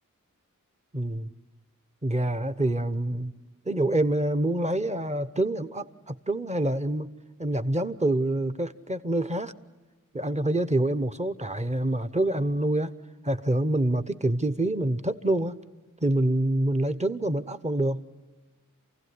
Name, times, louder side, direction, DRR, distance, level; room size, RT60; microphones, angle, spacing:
voice 1, 0.9-1.3 2.0-3.3 3.7-7.1 7.4-9.5 10.1-12.9 13.2-15.6 16.0-18.1, right 1 dB, 20° right, 0.9 m, -26 dB
28.0 x 16.5 x 9.6 m
wide cardioid pair, 65°, 32 cm